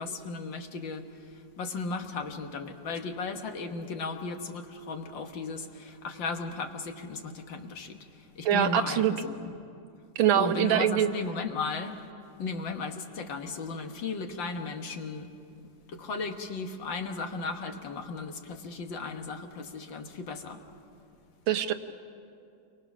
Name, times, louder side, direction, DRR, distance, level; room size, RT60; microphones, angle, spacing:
voice 1, 0.0-9.5 10.4-12.0 12.4-15.3 15.9-20.6, left 4 dB, 70° left, 5 dB, 2.1 m, -36 dB
voice 2, 8.5-9.1 10.2-11.1 21.5-21.7, right 10 dB, 90° right, 8 dB, 1.8 m, -23 dB
29.5 x 23.5 x 6.1 m, 2.5 s
omnidirectional pair, 2.1 m